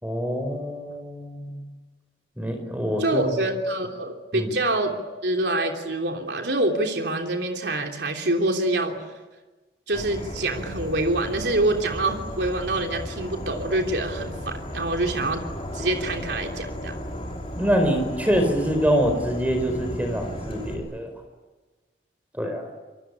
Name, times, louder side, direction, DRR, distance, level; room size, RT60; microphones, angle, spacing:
voice 1, 0.0-1.6 2.4-3.2 4.3-4.5 17.5-21.1 22.3-22.6, equal, 10° right, 6 dB, 4.7 m, -25 dB
voice 2, 3.0-5.0 5.2-9.0 9.9-15.4 15.7-17.0, right 2 dB, 75° right, 3 dB, 3.2 m, -26 dB
Insect / Frog, 9.9-20.7, equal, 30° left, 5.7 m, -35 dB
26.0 x 23.0 x 9.7 m, 1.2 s
head